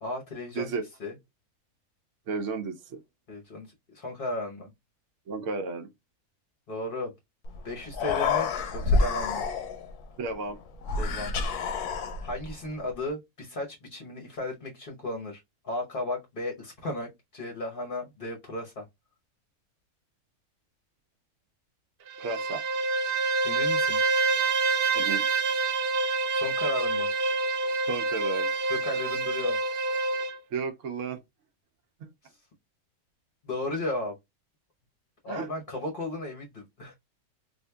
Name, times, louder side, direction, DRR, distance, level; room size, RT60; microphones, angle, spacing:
voice 1, 0.0-1.1 3.3-4.7 6.7-7.1 7.6-9.4 11.0-11.3 11.6-11.9 12.2-18.8 23.4-24.0 26.3-27.1 28.7-29.6 33.4-34.1 35.2-36.9, left 2 dB, 45° left, 0.9 m, -35 dB
voice 2, 2.3-3.0 5.3-5.9 10.2-10.6 22.2-22.6 24.9-25.3 27.9-28.5 30.5-31.2 35.3-35.5, right 4 dB, 60° right, 0.9 m, -33 dB
Human voice, 7.4-7.6 7.8-9.9 10.8-12.5, left 3 dB, 85° left, 1.2 m, -28 dB
Bowed string instrument, 22.1-30.4, right 3 dB, 85° right, 0.5 m, -27 dB
4.2 x 2.7 x 2.2 m
omnidirectional pair, 1.6 m